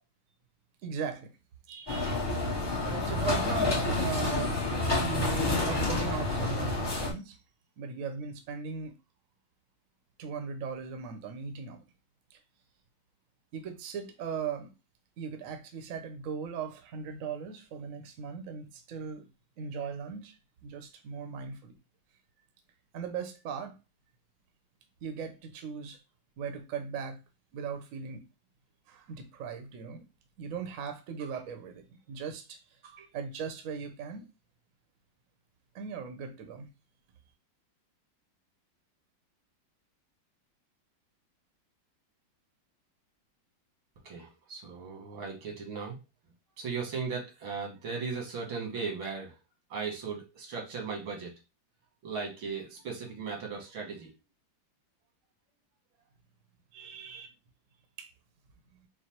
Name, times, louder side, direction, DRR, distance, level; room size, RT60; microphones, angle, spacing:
voice 1, 0.8-1.3 1.7-2.4 2.8-4.6 5.0-7.4 7.8-8.9 10.2-11.8 12.3-12.4 13.5-14.7 15.2-19.2 19.6-20.4 20.6-21.8 22.9-23.7 25.0-26.0 26.4-27.2 27.5-28.2 28.9-30.0 30.4-34.2 35.7-36.7 56.7-57.3 58.0-58.1 58.7-58.8, right 6 dB, 60° right, 1.0 m, -38 dB
sound 1, 1.9-7.1, left 2 dB, 20° left, 0.6 m, -29 dB
voice 2, 44.0-46.0 46.6-49.4 49.7-51.3 52.0-54.1, right 5 dB, 90° right, 2.2 m, -37 dB
4.8 x 2.0 x 4.3 m
omnidirectional pair, 2.1 m